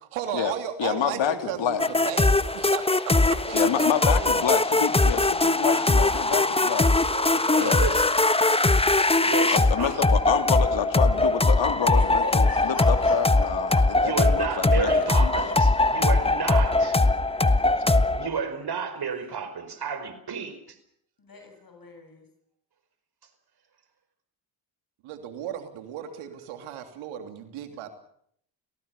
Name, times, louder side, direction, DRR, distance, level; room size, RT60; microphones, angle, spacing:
voice 1, 0.0-4.5 7.1-8.1 25.0-27.9, right 9 dB, 85° right, 7 dB, 3.1 m, -36 dB
voice 2, 0.8-1.8 3.5-6.9 7.6-7.8 9.5-13.7 14.0-14.9 15.2-15.3, left 9 dB, 65° left, 8 dB, 3.0 m, -28 dB
sound 1, 1.8-18.3, left 2 dB, 10° left, 1.3 m, -21 dB
voice 3, 5.7-6.6 11.9-13.5 13.7-13.8 14.6-15.1 15.5-16.0 17.3-17.7 19.1-19.2 21.2-22.2, left 4 dB, 45° left, 5 dB, 8.0 m, -40 dB
voice 4, 7.5-8.2 9.2-10.1 14.0-17.0 18.1-20.8, right 6 dB, 50° right, 11 dB, 5.0 m, -32 dB
28.5 x 17.5 x 7.1 m, 0.67 s
supercardioid pair, 60°, 49 cm